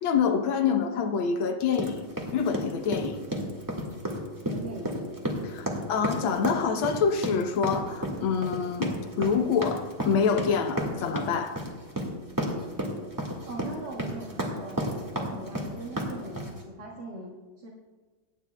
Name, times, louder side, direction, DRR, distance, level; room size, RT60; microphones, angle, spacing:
voice 1, 0.0-2.0 2.3-3.2 5.4-11.6, left 6 dB, 70° left, 6 dB, 1.7 m, -26 dB
sound 1, 1.7-16.6, equal, 10° right, 1.5 m, -32 dB
voice 2, 4.4-4.9 13.5-14.9 15.2-17.7, right 1 dB, 50° right, -4 dB, 2.2 m, -40 dB
26.0 x 9.7 x 2.3 m, 1.3 s
omnidirectional pair, 2.4 m